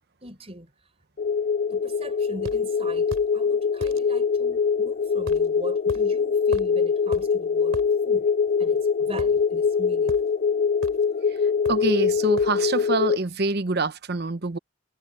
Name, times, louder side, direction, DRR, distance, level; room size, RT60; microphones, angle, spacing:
voice 1, 0.2-0.7 1.7-7.8 8.0-8.3 8.6-10.2, right 1 dB, 30° right, 4.5 m, -41 dB
sound 1, 1.2-13.2, left 6 dB, 45° left, 0.5 m, -23 dB
sound 2, 2.4-2.6 3.1-3.3 3.8-4.0 5.3-5.5 5.9-6.0 6.5-6.8 7.1-7.3 7.7-7.9 9.2-9.7 10.1-10.3 10.8-11.1 11.6-11.9 12.4-12.6, right 1 dB, 80° right, 3.2 m, -37 dB
voice 2, 11.3-14.6, right 3 dB, 50° right, 1.0 m, -26 dB
head